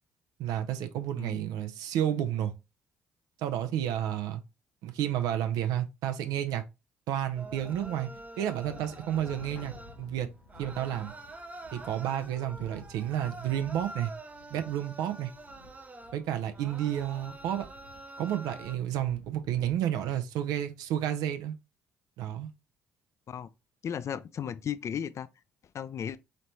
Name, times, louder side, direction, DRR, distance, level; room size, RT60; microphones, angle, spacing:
voice 1, 0.4-2.5 3.4-4.4 4.8-6.6 7.1-8.1 8.4-10.3 10.6-11.1 11.7-14.1 14.5-15.3 16.1-17.7 18.2-21.5 22.2-22.5, right 11 dB, 70° right, 0.5 m, -31 dB
sound 1, 7.1-19.8, left 3 dB, 85° left, 0.7 m, -53 dB
sound 2, 7.4-10.1 10.5-18.8, right 2 dB, 20° right, 0.6 m, -47 dB
voice 2, 23.8-25.3 25.7-26.2, left 8 dB, 45° left, 0.4 m, -35 dB
4.1 x 3.2 x 2.7 m
hypercardioid pair, 50°, 7 cm